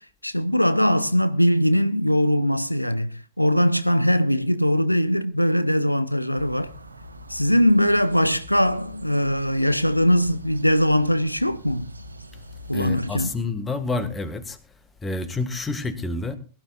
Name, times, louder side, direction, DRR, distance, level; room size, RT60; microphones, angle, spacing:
voice 1, 0.2-6.7 7.3-11.9 12.7-13.3, equal, 90° left, 0.6 m, -21 dB
sound 1, 6.3-13.4, equal, 80° right, 1.2 m, -43 dB
voice 2, 12.7-14.6 15.0-16.4, left 3 dB, 15° left, 1.6 m, -28 dB
21.5 x 12.0 x 2.4 m
figure-of-eight pair, 90°, 0 cm